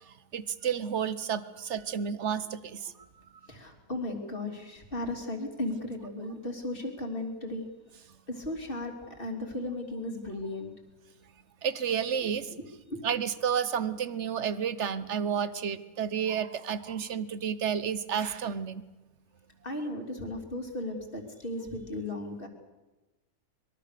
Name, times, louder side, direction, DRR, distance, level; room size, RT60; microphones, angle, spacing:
voice 1, 0.3-2.9 11.6-12.5 13.0-18.8, right 7 dB, 50° right, 15 dB, 0.9 m, -31 dB
voice 2, 3.5-7.6 8.3-10.7 12.2-12.3 12.6-13.0 19.6-22.5, left 1 dB, 30° left, 3 dB, 3.2 m, -36 dB
24.0 x 22.5 x 6.7 m, 1.1 s
omnidirectional pair, 2.0 m